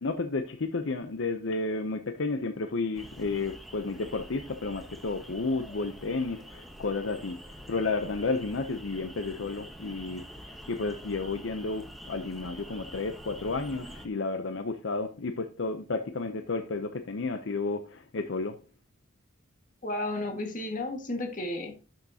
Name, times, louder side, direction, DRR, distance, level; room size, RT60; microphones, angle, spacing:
voice 1, 0.0-18.5, left 3 dB, 65° left, 0.6 m, -32 dB
sound 1, 2.9-14.1, equal, ahead, 0.9 m, -46 dB
voice 2, 19.8-21.7, left 1 dB, 40° left, 1.8 m, -33 dB
12.0 x 6.4 x 2.8 m
head